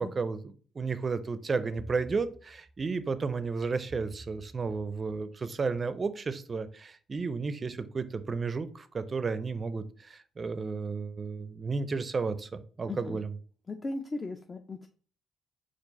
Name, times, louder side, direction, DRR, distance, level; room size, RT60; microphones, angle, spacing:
voice 1, 0.0-13.3, right 4 dB, 35° right, 12 dB, 0.4 m, -33 dB
voice 2, 12.9-13.2 13.7-14.9, left 2 dB, 30° left, 5 dB, 0.5 m, -37 dB
4.5 x 2.5 x 4.1 m, 0.41 s
cardioid pair, 90°, 0 cm